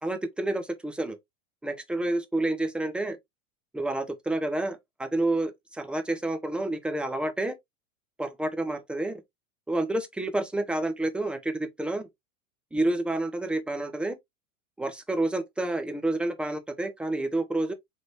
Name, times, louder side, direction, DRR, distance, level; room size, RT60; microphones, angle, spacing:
voice 1, 0.0-1.2 1.6-3.2 3.7-7.5 8.2-9.2 9.7-12.1 12.7-14.2 14.8-17.7, right 2 dB, 5° right, 0.4 m, -29 dB
3.8 x 3.4 x 2.9 m
hypercardioid pair, 115°, 42 cm